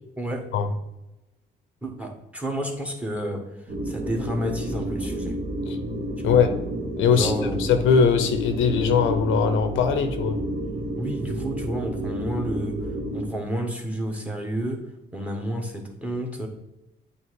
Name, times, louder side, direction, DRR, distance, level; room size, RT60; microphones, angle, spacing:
voice 1, 1.8-3.4 3.8-5.4 6.2-6.4 7.1-7.6 11.0-12.8 13.1-14.8 15.1-16.5, right 1 dB, 5° right, 3 dB, 1.3 m, -30 dB
sound 1, 3.7-13.3, right 1 dB, 45° right, 1.4 m, -30 dB
voice 2, 7.0-7.3 7.6-10.4, left 6 dB, 85° left, 8 dB, 0.8 m, -20 dB
8.3 x 2.8 x 4.7 m, 0.93 s
cardioid pair, 90°, 20 cm